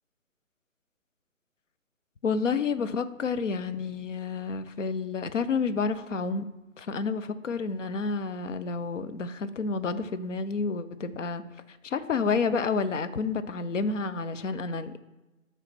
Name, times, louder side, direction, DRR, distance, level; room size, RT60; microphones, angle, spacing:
voice 1, 2.2-6.5 6.8-11.4 11.8-15.0, left 4 dB, 60° left, 11 dB, 0.6 m, -29 dB
7.7 x 3.2 x 6.0 m, 1.0 s
figure-of-eight pair, 155°, 42 cm